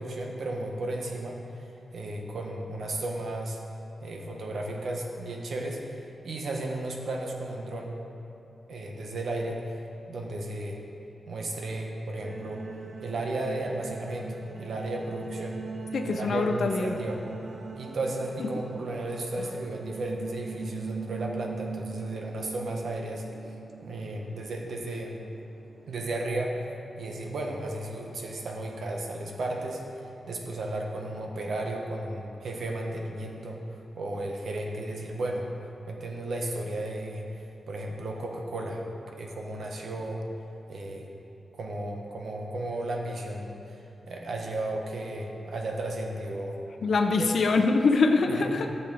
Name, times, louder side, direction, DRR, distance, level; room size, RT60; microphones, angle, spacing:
voice 1, 0.0-3.6 4.0-7.9 8.7-9.6 10.1-10.8 11.3-12.6 13.0-15.6 16.0-17.2 17.8-23.2 23.8-25.2 25.9-26.6 27.0-33.6 33.9-35.5 35.8-37.3 37.7-40.2 40.7-41.1 41.5-46.6 47.2-47.3 48.3-48.6, right 1 dB, 70° right, 1 dB, 1.3 m, -34 dB
sound 1, 12.2-26.4, right 5 dB, 50° right, 0.6 m, -41 dB
voice 2, 15.9-17.0 18.4-18.5 46.8-48.7, left 3 dB, 65° left, 4 dB, 0.6 m, -24 dB
14.0 x 7.1 x 4.0 m, 3.0 s
wide cardioid pair, 170°, 0 cm